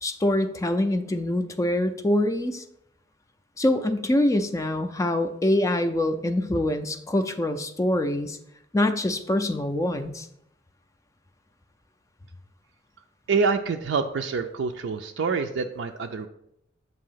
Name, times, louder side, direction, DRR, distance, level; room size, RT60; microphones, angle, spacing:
voice 1, 0.0-2.6 3.6-8.4 8.7-10.3, left 1 dB, 15° left, 8 dB, 0.3 m, -24 dB
voice 2, 13.3-16.3, right 5 dB, 70° right, 5 dB, 0.4 m, -26 dB
7.5 x 2.8 x 5.6 m, 0.78 s
head